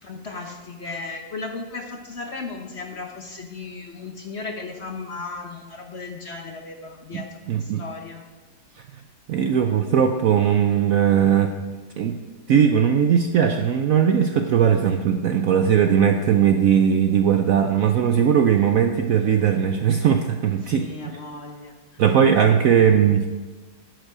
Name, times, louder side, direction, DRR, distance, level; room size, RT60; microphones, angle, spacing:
voice 1, 0.0-8.2 20.7-22.0 22.5-22.7, left 3 dB, 45° left, 3 dB, 1.0 m, -36 dB
voice 2, 7.1-7.8 8.9-9.0 9.3-11.5 12.0-12.2 12.5-21.2 22.0-23.3, right 8 dB, 70° right, 6 dB, 0.8 m, -19 dB
11.5 x 8.1 x 4.8 m, 1.3 s
omnidirectional pair, 1.9 m